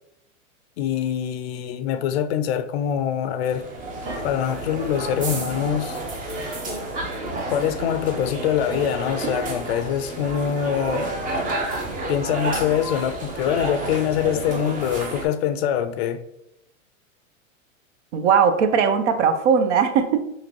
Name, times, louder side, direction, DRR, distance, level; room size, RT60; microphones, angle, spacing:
voice 1, 0.8-3.7 4.2-6.0 7.5-11.2 12.1-16.2, left 9 dB, 50° left, 0.4 m, -24 dB
sound 1, 3.5-15.3, right 2 dB, 20° right, 0.6 m, -30 dB
voice 2, 18.1-20.3, right 6 dB, 60° right, 0.6 m, -19 dB
3.8 x 3.1 x 3.0 m
hypercardioid pair, 120°, 40 cm